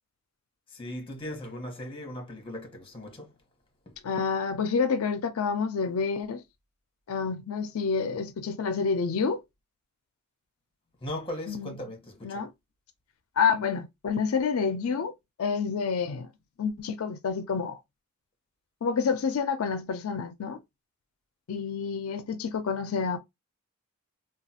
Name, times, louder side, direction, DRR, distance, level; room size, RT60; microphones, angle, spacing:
voice 1, 0.8-3.3 11.0-12.4, left 1 dB, 25° left, 1.0 m, -38 dB
voice 2, 4.0-6.4 7.1-9.4 11.5-11.7 12.2-12.5 13.4-15.1 15.4-16.3 16.6-17.8 18.8-20.6 21.5-23.2, left 5 dB, 85° left, 0.4 m, -28 dB
3.1 x 2.3 x 2.7 m
head